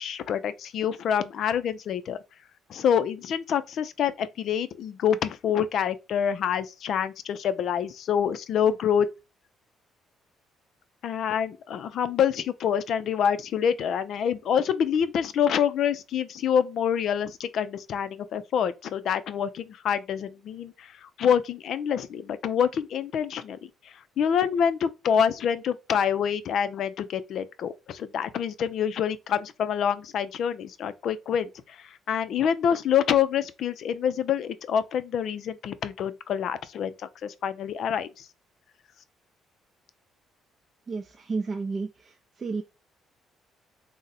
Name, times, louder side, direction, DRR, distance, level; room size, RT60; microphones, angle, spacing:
voice 1, 0.0-2.2 2.7-9.1 11.0-38.3, left 8 dB, 65° left, 0.3 m, -26 dB
voice 2, 40.9-42.1 42.4-42.6, right 4 dB, 40° right, 0.4 m, -31 dB
2.6 x 2.0 x 3.9 m
supercardioid pair, 80°, 0 cm